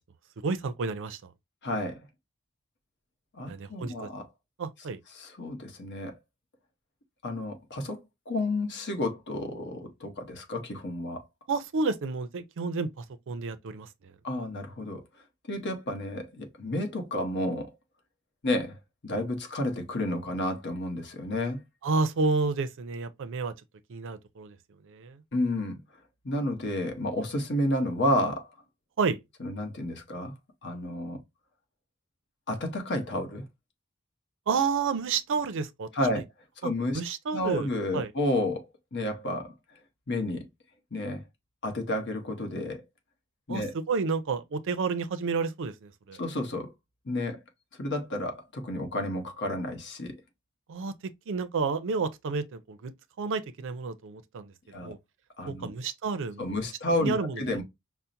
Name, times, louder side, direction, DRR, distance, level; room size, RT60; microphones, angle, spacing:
voice 1, 0.4-1.2 3.5-4.1 4.6-5.0 11.5-14.1 21.8-23.5 23.9-24.6 24.9-25.2 29.0-29.2 34.5-35.9 36.6-38.1 43.5-46.2 50.7-50.9 51.3-52.9 53.2-55.0 55.5-56.5 57.0-57.6, right 4 dB, 60° right, 0.5 m, -30 dB
voice 2, 1.6-2.0 3.3-4.2 5.1-6.2 7.2-11.2 14.2-15.0 15.5-17.7 18.4-18.8 19.0-21.6 25.3-25.8 26.2-28.5 29.4-30.3 30.6-31.2 32.5-33.4 35.9-36.2 36.6-37.0 37.3-38.7 38.9-39.5 40.1-40.5 40.9-41.2 41.6-42.8 43.5-43.7 46.2-46.7 47.0-47.4 47.8-50.2 54.7-54.9 55.4-55.7 56.4-57.6, left 1 dB, 55° left, 1.0 m, -31 dB
5.6 x 2.0 x 2.5 m
head